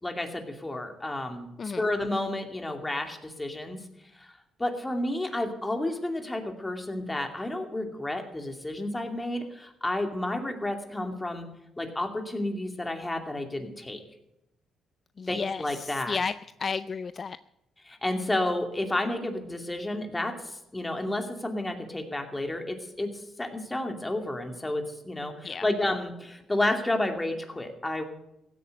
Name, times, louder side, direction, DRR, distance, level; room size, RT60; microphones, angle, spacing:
voice 1, 0.0-3.8 4.2-4.3 4.6-11.5 11.8-14.0 15.3-16.2 17.8-23.1 23.4-28.1, left 1 dB, 15° left, 5 dB, 2.5 m, -31 dB
voice 2, 15.2-17.4 25.4-25.7, left 5 dB, 40° left, 14 dB, 0.4 m, -33 dB
16.0 x 8.4 x 7.9 m, 0.85 s
cardioid pair, 90°, 0 cm